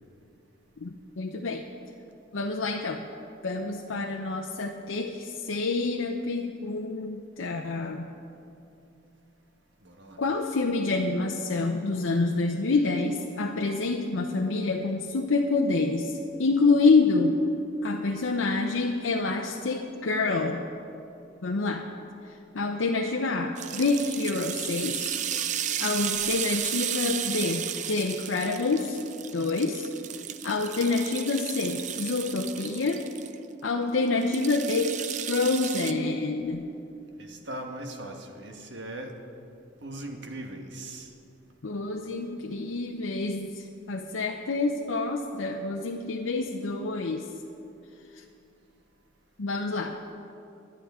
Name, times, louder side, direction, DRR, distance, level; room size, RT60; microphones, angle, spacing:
voice 1, 0.8-1.6 2.3-3.0 3.4-8.1 10.2-17.4 17.8-20.6 21.4-21.9 22.5-25.2 25.8-29.0 29.3-29.9 30.4-33.1 33.6-36.7 41.6-47.3 48.1-48.2 49.4-50.0, left 3 dB, 80° left, 1 dB, 0.7 m, -27 dB
voice 2, 9.8-10.2 37.2-39.1 39.8-41.1, right 1 dB, 60° right, 3 dB, 1.4 m, -39 dB
sound 1, 23.6-33.3 34.2-35.9, right 10 dB, 35° right, 0.4 m, -33 dB
20.0 x 11.5 x 3.6 m, 2.7 s
head